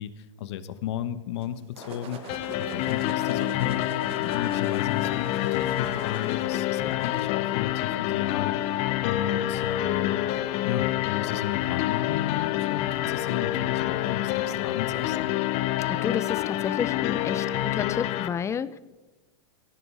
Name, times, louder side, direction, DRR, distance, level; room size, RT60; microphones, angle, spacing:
voice 1, 0.0-3.8 4.2-8.5 9.0-15.3, left 11 dB, 65° left, 13 dB, 1.3 m, -34 dB
sound 1, 1.4-7.3, right 9 dB, 40° right, 1.6 m, -46 dB
sound 2, 1.8-17.7, left 9 dB, 85° left, 1.0 m, -43 dB
sound 3, 2.3-18.3, left 14 dB, 45° left, 0.9 m, -27 dB
voice 2, 15.9-18.8, left 7 dB, 20° left, 17 dB, 0.7 m, -31 dB
18.0 x 15.0 x 4.9 m, 1.2 s
hypercardioid pair, 125°, 15 cm